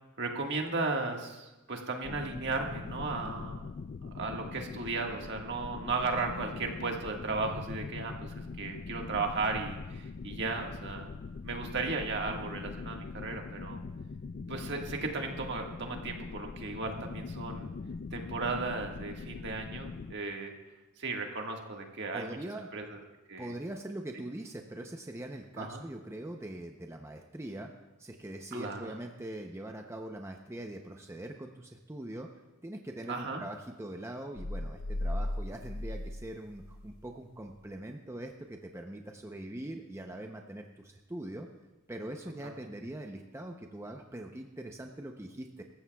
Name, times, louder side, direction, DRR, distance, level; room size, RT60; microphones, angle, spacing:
voice 1, 0.2-3.7 4.0-11.1 11.4-13.8 14.5-17.7 18.1-20.5 21.0-22.4 22.7-23.0 23.3-23.5 25.6-25.8 28.5-28.9 33.1-33.4 42.4-42.5, right 3 dB, 55° right, 2 dB, 1.6 m, -35 dB
sound 1, 2.0-20.1, left 4 dB, 40° left, 0.3 m, -42 dB
voice 2, 22.1-22.7 23.4-27.7 28.0-32.3 32.6-41.5 41.9-45.6, right 1 dB, 15° right, 3 dB, 0.6 m, -42 dB
sound 2, 34.4-37.1, left 1 dB, 70° left, 0.8 m, -36 dB
25.0 x 14.5 x 2.3 m, 1.1 s
head